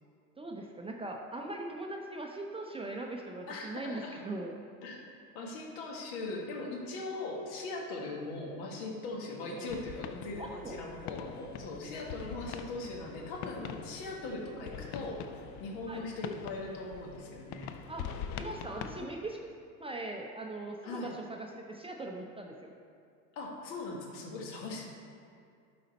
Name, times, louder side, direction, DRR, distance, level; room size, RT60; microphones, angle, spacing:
voice 1, 0.4-4.6 9.5-9.7 10.4-10.8 14.6-14.7 15.9-16.0 17.9-19.4 19.8-22.7, right 2 dB, 15° right, 1 dB, 0.5 m, -40 dB
voice 2, 3.5-4.2 4.8-5.0 5.3-15.2 15.6-17.8 20.8-21.1 23.3-24.9, left 2 dB, 60° left, -1 dB, 1.7 m, -40 dB
sound 1, 9.7-19.1, left 8 dB, 40° left, 0.5 m, -44 dB
11.5 x 4.2 x 4.2 m, 2.4 s
hypercardioid pair, 75°, 44 cm